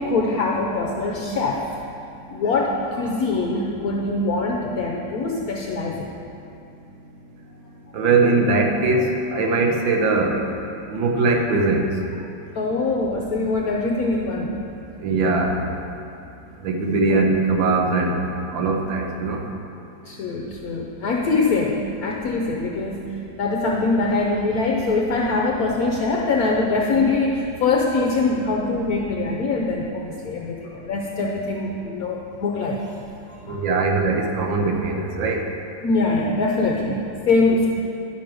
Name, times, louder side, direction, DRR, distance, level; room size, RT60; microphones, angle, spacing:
voice 1, 0.0-1.7 2.3-6.1 12.5-14.5 17.1-17.2 18.5-18.6 20.1-23.0 23.4-33.0 33.3-33.6 35.8-37.7, left 3 dB, 65° left, -1 dB, 1.0 m, -23 dB
voice 2, 7.9-10.5 10.9-11.9 15.0-15.6 16.6-18.2 18.5-19.4 33.5-35.4, right 3 dB, 85° right, 2 dB, 1.6 m, -21 dB
11.0 x 5.0 x 6.0 m, 2.7 s
omnidirectional pair, 2.0 m